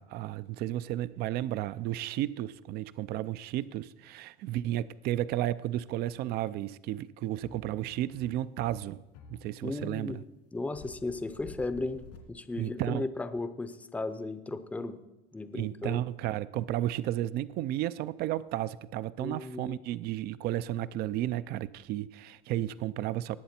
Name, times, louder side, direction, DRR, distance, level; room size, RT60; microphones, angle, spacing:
voice 1, 0.0-9.0 9.3-10.2 12.6-13.0 15.5-23.4, right 13 dB, 55° right, 0.5 m, -33 dB
sound 1, 7.4-12.9, left 5 dB, 80° left, 2.6 m, -51 dB
voice 2, 9.6-10.2 10.5-12.0 12.3-15.0 15.3-16.0 19.2-19.8, left 2 dB, 5° left, 0.6 m, -35 dB
19.0 x 7.8 x 4.4 m
cardioid pair, 140°, 19 cm